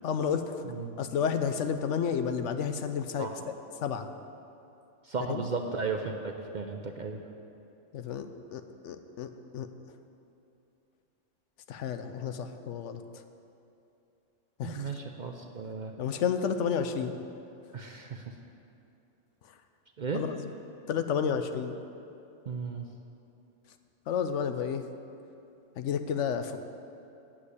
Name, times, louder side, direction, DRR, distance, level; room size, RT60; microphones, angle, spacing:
voice 1, 0.0-0.6 1.0-3.5 3.8-4.1 5.3-5.4 7.9-9.7 11.7-13.2 14.6-14.9 16.0-17.2 19.4-19.6 20.1-20.5 20.9-21.8 24.1-24.9 25.7-26.6, left 7 dB, 75° left, 8 dB, 0.9 m, -31 dB
voice 2, 5.0-7.2 14.6-15.9 17.7-18.3 20.0-20.2 22.5-22.8, right 4 dB, 50° right, 3 dB, 0.6 m, -35 dB
8.5 x 7.3 x 8.3 m, 2.7 s
omnidirectional pair, 1.3 m